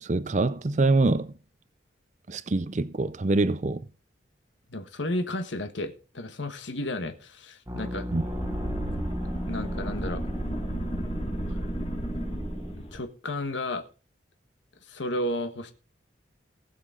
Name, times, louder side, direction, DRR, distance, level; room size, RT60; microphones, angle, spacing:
voice 1, 0.0-1.3 2.3-3.8 8.1-8.2, right 2 dB, 40° right, 0.5 m, -25 dB
voice 2, 4.7-8.1 9.5-10.2 11.5-11.6 12.9-13.8 14.9-15.7, left 1 dB, 80° left, 1.3 m, -32 dB
sound 1, 7.7-12.7, equal, 15° right, 1.3 m, -37 dB
sound 2, 8.1-13.0, equal, 30° left, 1.9 m, -33 dB
19.0 x 6.8 x 3.8 m
head